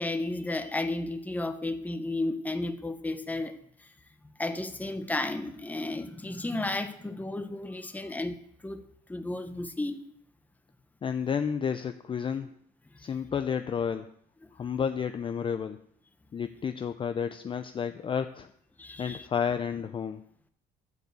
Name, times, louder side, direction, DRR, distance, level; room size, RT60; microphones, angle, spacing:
voice 1, 0.0-3.9 4.4-10.1 14.4-14.5 18.8-19.3, left 2 dB, 10° left, 9 dB, 0.9 m, -33 dB
voice 2, 11.0-12.5 13.0-14.1 14.5-15.8 16.3-18.5 19.0-20.2, left 7 dB, 30° left, 9 dB, 0.5 m, -31 dB
12.0 x 4.4 x 8.1 m, 0.68 s
cardioid pair, 110°, 17 cm